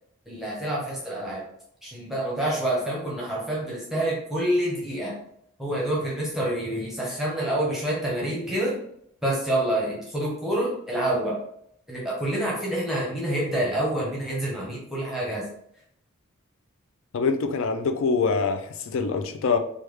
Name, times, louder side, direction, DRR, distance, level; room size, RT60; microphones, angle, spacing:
voice 1, 0.3-1.4 1.8-5.2 5.6-8.8 9.2-11.4 11.9-15.5, right 1 dB, ahead, -5 dB, 0.7 m, -27 dB
voice 2, 17.1-19.6, left 4 dB, 60° left, 7 dB, 0.4 m, -24 dB
3.2 x 2.2 x 3.2 m, 0.70 s
head